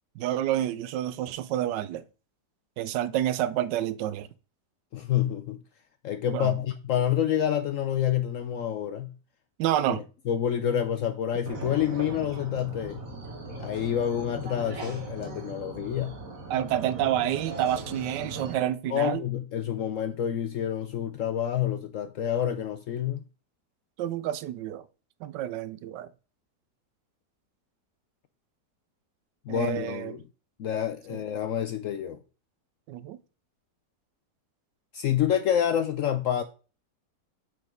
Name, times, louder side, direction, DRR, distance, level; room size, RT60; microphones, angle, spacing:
voice 1, 0.2-2.0 2.8-4.3 6.3-6.5 9.6-10.0 16.5-19.2 24.0-24.8 25.2-26.1 29.5-30.2 31.1-31.2 32.9-33.2, right 12 dB, 85° right, 1.2 m, -29 dB
voice 2, 4.9-5.6 6.0-9.1 9.9-13.0 13.6-16.2 18.9-23.2 29.5-30.3 30.6-32.2 34.9-36.4, left 10 dB, 70° left, 0.7 m, -28 dB
sound 1, 11.5-18.5, right 2 dB, 50° right, 2.0 m, -39 dB
5.8 x 5.2 x 5.2 m
omnidirectional pair, 1.8 m